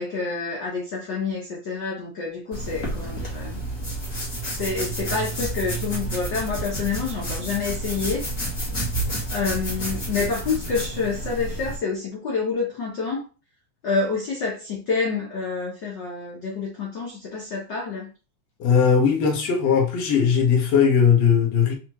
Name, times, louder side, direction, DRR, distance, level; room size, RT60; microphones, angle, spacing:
voice 1, 0.0-3.6 4.5-8.3 9.3-13.2 13.8-18.1, left 4 dB, 85° left, 0.9 m, -28 dB
sound 1, 2.5-11.8, right 1 dB, 35° left, 1.5 m, -30 dB
voice 2, 18.6-21.8, left 7 dB, 65° left, 2.1 m, -19 dB
6.0 x 2.8 x 3.0 m
omnidirectional pair, 3.4 m